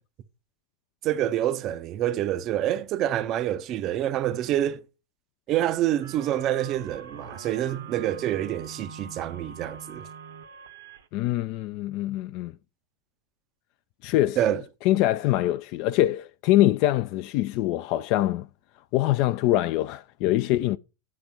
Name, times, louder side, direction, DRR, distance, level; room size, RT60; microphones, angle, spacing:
voice 1, 1.0-4.8 5.5-10.1 14.4-14.6, right 12 dB, 35° right, 0.5 m, -27 dB
sound 1, 6.0-11.1, right 6 dB, 60° right, 0.8 m, -44 dB
voice 2, 11.1-12.5 14.0-14.4 14.9-18.5 18.9-20.8, left 15 dB, 45° left, 0.3 m, -24 dB
9.4 x 3.4 x 5.8 m
figure-of-eight pair, 90°, 0 cm